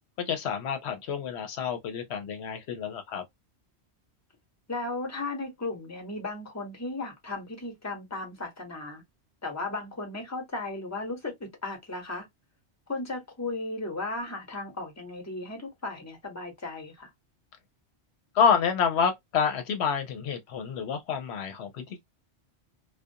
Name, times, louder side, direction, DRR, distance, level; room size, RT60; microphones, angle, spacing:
voice 1, 0.2-3.2 18.3-22.0, left 6 dB, 75° left, 0.8 m, -28 dB
voice 2, 4.7-9.0 9.4-12.3 12.9-17.1, left 2 dB, 15° left, 0.9 m, -35 dB
2.4 x 2.2 x 2.6 m
omnidirectional pair, 1.1 m